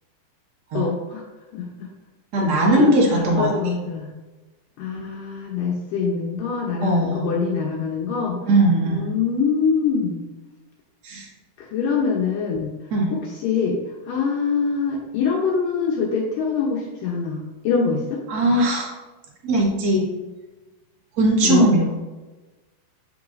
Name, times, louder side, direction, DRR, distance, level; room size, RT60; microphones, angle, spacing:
voice 1, 0.7-1.2 1.5-1.9 2.4-4.1 4.8-8.5 8.8-10.3 11.6-12.7 13.4-13.8 14.1-18.2 21.4-21.7, left 5 dB, 75° left, -2 dB, 2.4 m, -24 dB
voice 2, 2.3-3.5 6.8-7.3 8.5-9.1 11.0-11.3 12.9-13.2 18.3-19.0 19.4-20.1 21.2-21.9, right 1 dB, 75° right, -3 dB, 0.9 m, -19 dB
8.0 x 6.5 x 2.6 m, 1.2 s
omnidirectional pair, 4.3 m